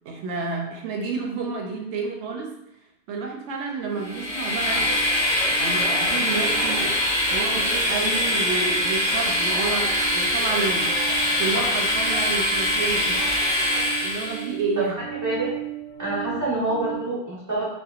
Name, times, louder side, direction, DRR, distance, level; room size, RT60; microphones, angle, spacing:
voice 1, 0.1-2.5 3.1-4.9 5.6-10.9 11.4-13.2 14.0-14.9, right 4 dB, 90° right, 0 dB, 0.9 m, -30 dB
sound 1, 3.8-17.0, right 16 dB, 70° left, 0.8 m, -38 dB
Train, 4.0-14.5, left 1 dB, 45° left, 0.7 m, -23 dB
voice 2, 16.0-17.7, right 2 dB, 15° right, -7 dB, 0.9 m, -26 dB
2.8 x 2.3 x 2.4 m, 0.83 s
omnidirectional pair, 1.1 m